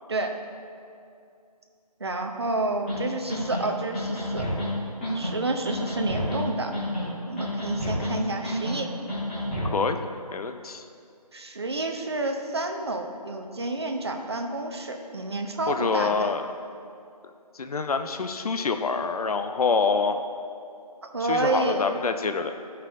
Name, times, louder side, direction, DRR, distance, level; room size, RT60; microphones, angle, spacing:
voice 1, 2.0-4.5 5.1-6.7 7.3-8.9 11.3-16.3 21.1-21.8, right 2 dB, 40° right, 4 dB, 0.6 m, -29 dB
sound 1, 2.9-3.0 3.3-3.6 3.9-4.7 5.0-5.3 5.6-6.4 6.7-7.1 7.4-8.1 8.4-8.8 9.1-9.7, equal, 15° left, 1.4 m, -29 dB
voice 2, 9.7-10.1 10.3-10.8 15.7-16.5 17.5-20.2 21.2-22.5, left 4 dB, 65° left, 7 dB, 0.5 m, -26 dB
13.0 x 5.5 x 2.6 m, 2.5 s
figure-of-eight pair, 170°, 20 cm